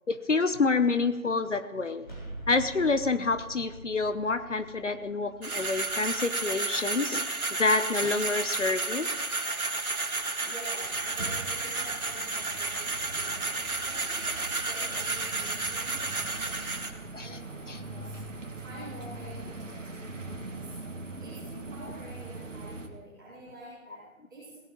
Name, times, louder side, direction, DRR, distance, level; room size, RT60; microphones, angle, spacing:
voice 1, 0.1-2.1 2.5-9.1 17.1-17.4 17.7-17.8, left 3 dB, 60° left, 11 dB, 0.9 m, -28 dB
sound 1, 2.0-7.7, right 1 dB, 35° left, 4.1 m, -46 dB
sound 2, 5.4-16.9, right 3 dB, 80° right, 2.2 m, -32 dB
voice 2, 10.4-18.2 18.6-20.7 21.2-24.6, right 1 dB, 15° right, -12 dB, 4.0 m, -48 dB
sound 3, 10.8-22.9, right 2 dB, 60° right, 2.1 m, -42 dB
24.0 x 17.5 x 3.1 m, 1.2 s
figure-of-eight pair, 175°, 42 cm